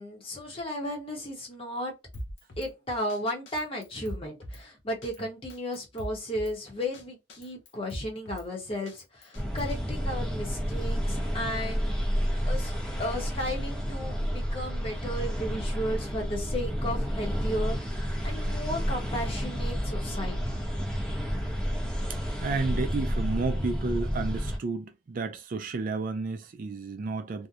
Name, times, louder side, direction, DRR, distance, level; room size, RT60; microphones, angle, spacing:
voice 1, 0.0-1.9 2.6-11.9 12.5-12.7 13.0-20.4, left 1 dB, 30° left, 0.9 m, -34 dB
Drum kit, 2.1-2.7 3.1-3.2 3.5-4.6 5.0-5.2 5.5-6.5 6.9-7.0 7.3-8.5 8.9-9.8, equal, 65° left, 0.6 m, -41 dB
sound 1, 9.3-24.6, equal, 5° left, 0.8 m, -30 dB
voice 2, 22.4-27.5, right 3 dB, 45° right, 0.4 m, -32 dB
2.7 x 2.1 x 2.4 m
head